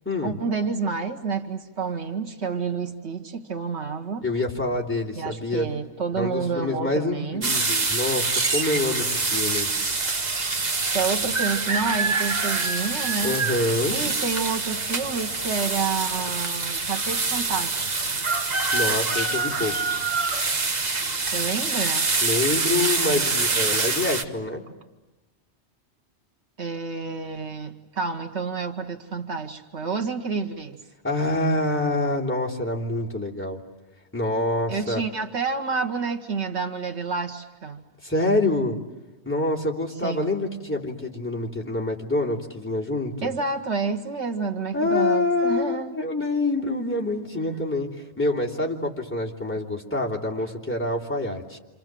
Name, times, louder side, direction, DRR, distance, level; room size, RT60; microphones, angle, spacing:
voice 1, 0.2-4.2 5.2-7.5 10.9-13.4 13.9-18.2 21.3-22.1 26.6-30.8 34.7-37.8 40.0-40.4 43.2-45.9 47.4-47.6, right 5 dB, 75° right, 5 dB, 1.6 m, -29 dB
voice 2, 4.2-5.7 6.1-9.7 13.2-14.0 18.7-19.8 22.2-24.6 31.0-33.6 34.1-35.0 38.0-38.8 39.2-43.3 44.7-47.9 48.2-51.6, left 2 dB, 10° left, -4 dB, 3.2 m, -26 dB
sound 1, 7.4-24.2, right 3 dB, 40° right, 1.2 m, -25 dB
28.5 x 27.0 x 7.6 m, 1.1 s
omnidirectional pair, 1.2 m